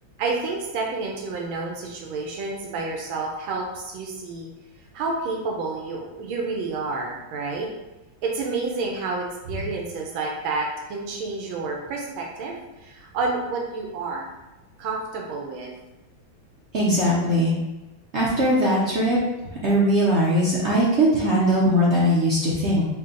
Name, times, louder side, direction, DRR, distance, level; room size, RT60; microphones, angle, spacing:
voice 1, 0.2-4.5 4.9-7.7 8.2-14.3 14.8-15.7, right 3 dB, 85° right, -1 dB, 1.5 m, -29 dB
voice 2, 16.7-17.5 18.1-19.2 19.6-22.8, equal, 70° right, -6 dB, 0.6 m, -20 dB
4.2 x 2.2 x 3.7 m, 1.1 s
omnidirectional pair, 2.2 m